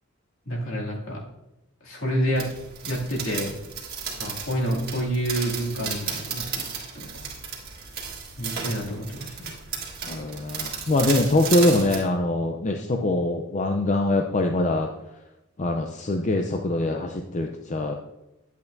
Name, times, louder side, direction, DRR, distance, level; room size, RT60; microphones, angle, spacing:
voice 1, 0.5-1.2 1.8-2.4 2.8-3.5 4.2-7.2 8.4-9.5, equal, 65° left, -3 dB, 2.5 m, -28 dB
sound 1, 2.4-12.0, right 6 dB, 50° right, 1.7 m, -34 dB
voice 2, 10.0-14.9 15.6-18.0, left 2 dB, 35° left, 3 dB, 0.5 m, -23 dB
10.5 x 8.3 x 2.6 m, 0.92 s
head